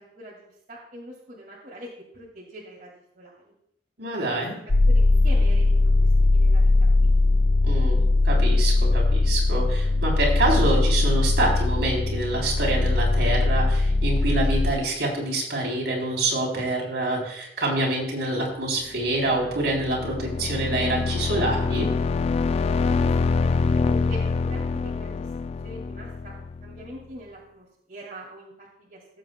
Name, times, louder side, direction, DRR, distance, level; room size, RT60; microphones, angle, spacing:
voice 1, 0.0-1.9 2.1-3.5 4.4-4.5 4.9-7.1 23.0-26.3 26.6-29.2, equal, 50° right, -4 dB, 2.1 m, -43 dB
voice 2, 4.0-4.5 7.6-21.9, right 2 dB, 70° right, -2 dB, 3.4 m, -26 dB
sound 1, 4.7-14.7, left 2 dB, 90° left, 0.7 m, -20 dB
sound 2, 19.1-26.9, left 4 dB, 35° left, 0.3 m, -25 dB
18.5 x 7.6 x 2.2 m, 0.74 s
head